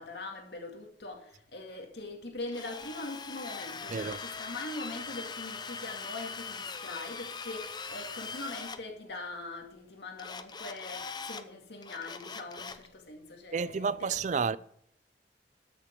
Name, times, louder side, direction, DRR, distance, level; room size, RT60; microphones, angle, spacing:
voice 1, 0.0-14.2 14.4-14.6, left 2 dB, 70° left, 2.1 m, -42 dB
Drill, 2.5-8.8 10.2-11.4 11.8-12.9, left 5 dB, 25° left, 0.6 m, -41 dB
voice 2, 3.9-4.2 13.5-14.6, right 5 dB, 45° right, 0.4 m, -30 dB
13.5 x 6.9 x 4.5 m
head